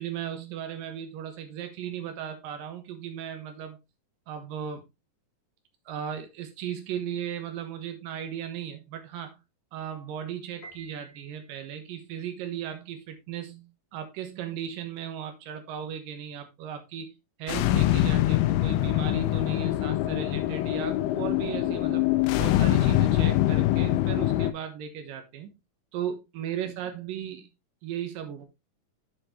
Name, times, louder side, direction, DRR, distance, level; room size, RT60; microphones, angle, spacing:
voice 1, 0.0-3.8 4.3-4.8 5.9-9.4 9.7-25.5 25.9-27.5 27.8-28.5, right 9 dB, 85° right, 2.9 m, -36 dB
Piano, 10.6-11.9, right 3 dB, 55° left, 3.9 m, -50 dB
sound 1, 17.5-24.5, left 15 dB, 90° left, 2.3 m, -24 dB
7.9 x 7.6 x 3.2 m
omnidirectional pair, 3.9 m